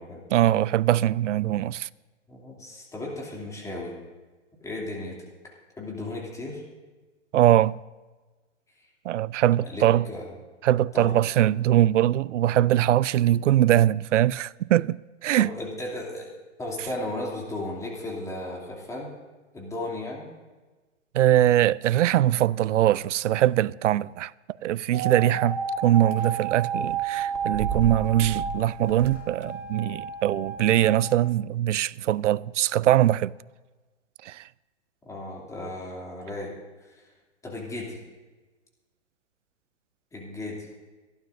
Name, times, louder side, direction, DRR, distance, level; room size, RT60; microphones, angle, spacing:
voice 1, 0.3-1.9 7.3-7.8 9.1-10.1 10.6-15.0 15.2-15.5 21.1-24.3 24.6-33.3 34.2-34.4, right 13 dB, 75° right, 0.5 m, -22 dB
voice 2, 2.3-3.9 4.6-5.2 5.8-6.6 8.8-8.9 9.6-10.3 10.9-11.1 15.4-16.3 16.6-19.1 19.5-20.3 35.0-36.5 36.9-37.1 37.4-38.0 40.1-40.7, left 1 dB, 10° left, 2.7 m, -35 dB
sound 1, 24.9-31.1, right 6 dB, 35° right, 1.7 m, -31 dB
25.5 x 12.0 x 2.6 m
hypercardioid pair, 130°, 37 cm